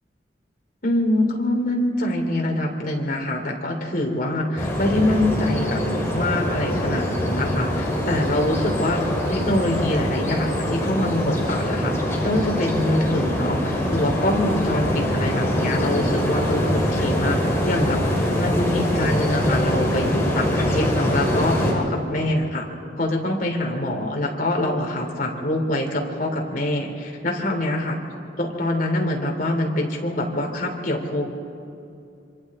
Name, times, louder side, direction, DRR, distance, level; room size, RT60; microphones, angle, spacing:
voice 1, 0.8-5.8 6.1-9.0 9.3-11.9 12.2-17.4 17.6-22.7 23.0-28.0 28.4-31.3, left 1 dB, 50° left, 1 dB, 3.3 m, -24 dB
sound 1, 4.6-21.7, equal, 15° left, 5.1 m, -23 dB
26.5 x 25.5 x 4.4 m, 2.7 s
head